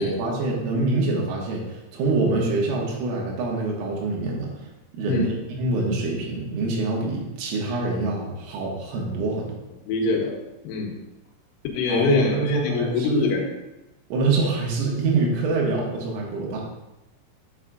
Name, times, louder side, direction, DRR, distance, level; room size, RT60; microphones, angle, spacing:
voice 1, 0.0-4.5 4.9-5.3 5.6-9.5 11.9-13.3 14.1-16.6, right 3 dB, 80° right, -2 dB, 3.9 m, -25 dB
voice 2, 9.9-10.3 10.7-10.9 11.7-13.4, left 5 dB, 80° left, 0 dB, 3.7 m, -24 dB
10.0 x 7.1 x 2.4 m, 0.96 s
omnidirectional pair, 5.9 m